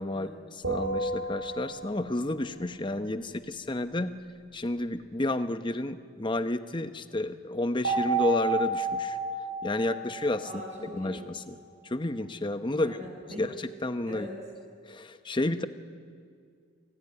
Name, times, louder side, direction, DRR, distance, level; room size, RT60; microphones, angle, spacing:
voice 1, 0.0-4.1 4.5-9.2 9.6-10.5 10.9-11.6 11.8-13.0 13.4-14.3 14.8-15.7, left 2 dB, 20° left, 10 dB, 0.9 m, -31 dB
sound 1, 0.6-2.2 7.8-11.2, right 3 dB, 60° right, 6.1 m, -31 dB
voice 2, 10.4-11.2 12.7-13.4 14.1-14.3, equal, 30° right, 0 dB, 7.3 m, -42 dB
28.0 x 19.0 x 9.8 m, 2.2 s
head